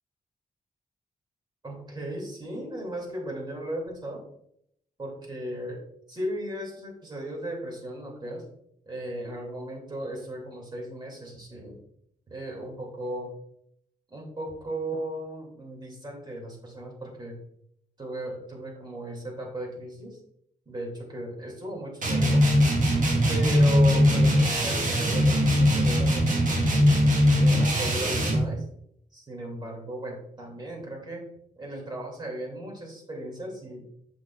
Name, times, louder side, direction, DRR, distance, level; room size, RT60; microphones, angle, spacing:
voice 1, 1.6-4.2 5.0-5.8 6.1-8.4 8.9-11.8 12.3-13.3 14.1-17.4 18.0-20.2 20.7-22.4 23.3-26.3 27.4-28.6 29.1-31.3 31.6-33.9, right 1 dB, 30° right, -1 dB, 2.5 m, -36 dB
sound 1, 22.0-28.5, equal, 55° right, 1.5 m, -21 dB
6.9 x 6.4 x 2.4 m, 0.73 s
wide cardioid pair, 105°, 16 cm